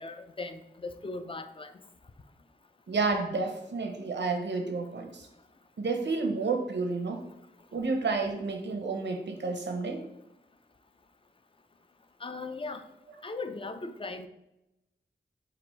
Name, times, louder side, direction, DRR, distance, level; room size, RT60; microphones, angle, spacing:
voice 1, 0.0-1.7 12.2-12.8 13.2-14.3, left 3 dB, 30° left, 8 dB, 0.4 m, -38 dB
voice 2, 2.9-5.3 5.8-7.3 7.7-10.0, right 4 dB, 85° right, 3 dB, 0.7 m, -30 dB
4.2 x 2.5 x 4.4 m, 0.89 s
wide cardioid pair, 85°, 18 cm